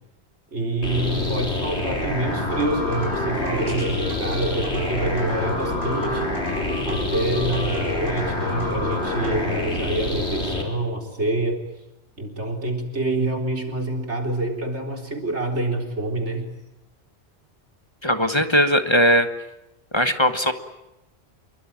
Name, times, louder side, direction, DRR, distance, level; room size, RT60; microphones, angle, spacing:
voice 1, 0.5-6.2 6.9-11.6 12.2-16.5, right 2 dB, 85° right, 3 dB, 4.4 m, -26 dB
sound 1, 0.8-10.6, left 1 dB, 80° left, 4.7 m, -27 dB
sound 2, 2.5-9.4, left 1 dB, 60° right, 7.6 m, -32 dB
voice 2, 18.0-19.3 19.9-20.5, equal, 25° left, 9 dB, 1.4 m, -19 dB
27.5 x 23.0 x 8.9 m, 0.91 s
omnidirectional pair, 1.1 m